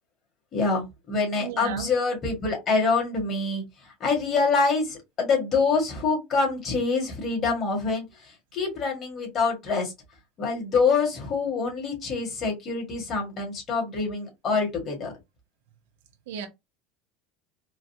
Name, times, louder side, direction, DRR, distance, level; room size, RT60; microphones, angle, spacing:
voice 1, 0.5-3.6 4.0-8.0 8.5-9.9 10.4-15.1, left 4 dB, 40° left, 1.8 m, -25 dB
voice 2, 1.4-2.0 16.3-16.5, right 9 dB, 85° right, 0.7 m, -35 dB
3.9 x 2.1 x 2.8 m
supercardioid pair, 115°, 0 cm